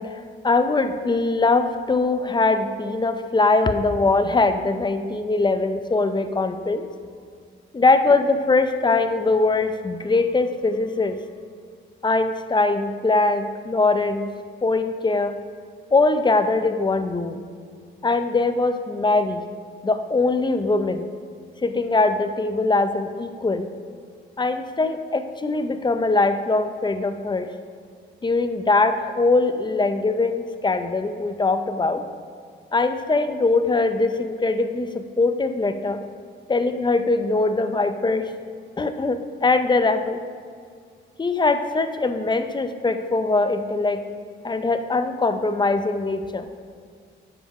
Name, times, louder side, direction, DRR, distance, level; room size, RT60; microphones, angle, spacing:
voice 1, 0.0-6.9 7.7-11.2 12.0-14.3 14.6-15.3 15.9-17.4 18.0-19.4 19.8-21.1 21.6-23.7 24.4-27.5 28.2-32.0 32.7-36.0 36.5-38.3 38.8-40.2 41.2-44.0 44.4-46.5, left 3 dB, 20° left, 9 dB, 0.5 m, -22 dB
9.3 x 5.8 x 5.4 m, 2.1 s
cardioid pair, 105°, 21 cm